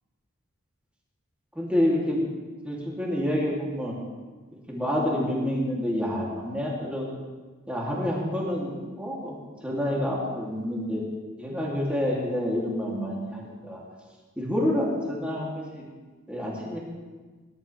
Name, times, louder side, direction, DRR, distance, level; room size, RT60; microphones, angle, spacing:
voice 1, 1.5-2.2 2.6-3.9 4.5-7.1 7.7-9.4 9.6-11.0 11.4-13.8 14.4-15.8 16.3-16.8, left 1 dB, 5° right, -5 dB, 3.0 m, -28 dB
20.5 x 11.5 x 3.5 m, 1.4 s
head